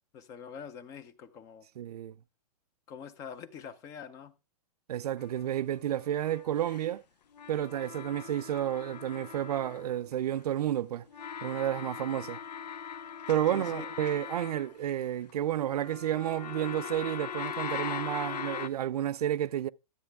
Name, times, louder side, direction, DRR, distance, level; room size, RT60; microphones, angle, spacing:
voice 1, 0.1-1.7 2.9-4.3 13.5-13.9, left 7 dB, 15° left, 0.6 m, -44 dB
voice 2, 1.8-2.1 4.9-7.0 7.5-11.1 11.4-12.4 13.3-19.7, right 11 dB, 70° right, 0.5 m, -31 dB
sound 1, 5.2-6.9 7.3-10.3 11.1-15.3 15.7-18.7, left 8 dB, 90° left, 1.0 m, -41 dB
12.5 x 7.9 x 3.4 m
hypercardioid pair, 170°, 20 cm